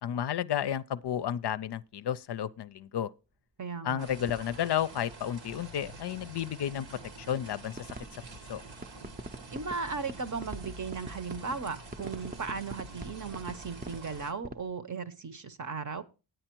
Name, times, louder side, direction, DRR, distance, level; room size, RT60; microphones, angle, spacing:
voice 1, 0.0-3.1 3.8-7.9 8.5-8.6, left 10 dB, 65° left, 0.5 m, -32 dB
sound 1, 1.4-1.7 2.6-2.7 3.6-3.7 4.2-6.0 6.3-14.7, right 2 dB, 20° right, 0.5 m, -46 dB
voice 2, 3.6-4.0 9.5-16.0, right 5 dB, 45° right, 0.8 m, -36 dB
sound 2, 4.0-14.3, right 2 dB, 90° right, 1.5 m, -47 dB
9.1 x 9.0 x 4.4 m
wide cardioid pair, 110°, 43 cm